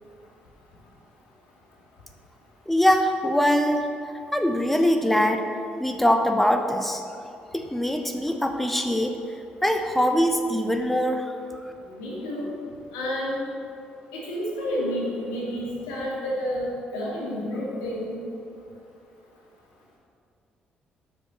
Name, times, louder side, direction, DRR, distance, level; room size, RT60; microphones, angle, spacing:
voice 1, 2.7-3.9 4.3-5.5 5.8-7.0 7.5-9.2 9.6-11.3, equal, 5° left, 5 dB, 0.9 m, -22 dB
voice 2, 11.8-12.5 12.9-13.4 14.1-18.2, equal, 80° left, -5 dB, 2.5 m, -30 dB
8.6 x 6.4 x 7.5 m, 2.6 s
hypercardioid pair, 45°, 4 cm